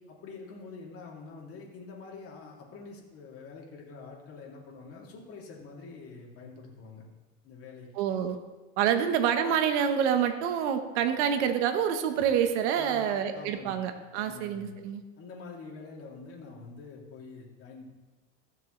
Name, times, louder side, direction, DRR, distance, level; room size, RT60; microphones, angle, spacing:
voice 1, 0.1-7.0 7.4-7.9 8.9-9.0 12.8-13.9 14.1-14.7 15.2-17.8, left 4 dB, 40° left, -2 dB, 2.8 m, -46 dB
voice 2, 8.0-8.4 8.8-15.0, right 8 dB, 70° right, 7 dB, 1.3 m, -27 dB
15.5 x 6.8 x 3.3 m, 1.2 s
supercardioid pair, 120°, 35 cm